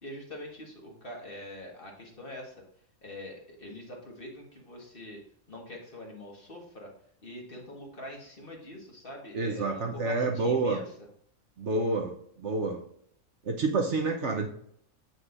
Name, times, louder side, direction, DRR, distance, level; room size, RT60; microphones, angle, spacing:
voice 1, 0.0-2.6 3.0-5.2 5.5-6.9 7.2-10.9, left 1 dB, 40° left, 0 dB, 1.7 m, -44 dB
voice 2, 9.3-10.8 11.6-12.8 13.4-14.5, right 3 dB, 55° right, 2 dB, 1.1 m, -28 dB
7.6 x 6.2 x 2.6 m, 0.66 s
omnidirectional pair, 1.6 m